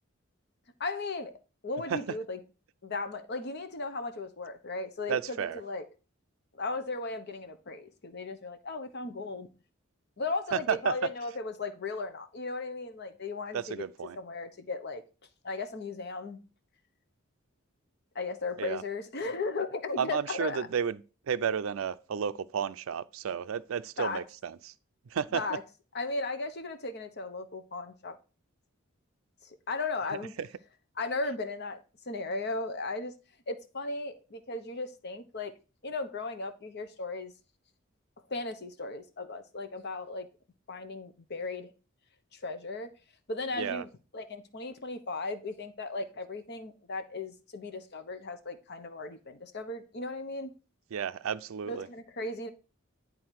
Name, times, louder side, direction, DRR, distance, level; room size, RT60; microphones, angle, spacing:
voice 1, 0.8-2.4 2.8-5.8 6.6-9.5 10.2-13.8 14.2-15.0 15.4-16.4 18.1-20.7 24.0-24.2 25.3-25.6 25.9-28.2 29.4-30.3 31.0-33.1 33.5-35.5 35.8-37.3 38.3-40.3 40.7-41.7 42.3-42.9 43.3-50.5 51.7-52.5, left 3 dB, 55° left, 0.9 m, -36 dB
voice 2, 5.1-5.6 10.5-10.9 13.5-14.2 18.6-18.8 20.0-24.7 25.1-25.4 30.4-30.5 43.6-43.8 50.9-51.9, right 7 dB, 75° right, 0.4 m, -32 dB
10.5 x 3.9 x 4.6 m
head